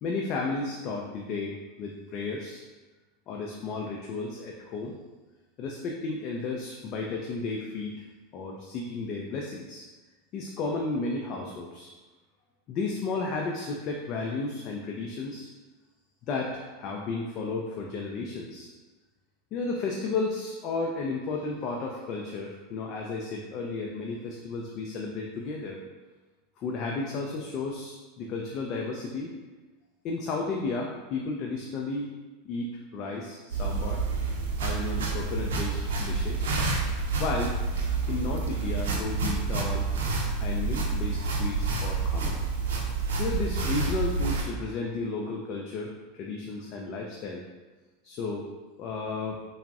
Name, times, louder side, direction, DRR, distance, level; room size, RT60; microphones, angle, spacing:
voice 1, 0.0-2.6 3.3-4.9 5.6-7.9 8.3-9.8 10.3-11.9 12.7-15.5 16.3-18.7 19.5-25.8 26.6-29.3 30.0-32.1 32.4-34.0 34.6-36.5 37.2-37.6 38.1-39.9 40.4-42.4 43.2-45.9 46.2-47.4 48.0-48.5 48.8-49.4, left 3 dB, 50° left, -1 dB, 0.3 m, -33 dB
sound 1, 33.5-44.4, right 4 dB, 80° right, 0.4 m, -28 dB
3.3 x 2.0 x 2.3 m, 1.3 s
hypercardioid pair, 100°, 0 cm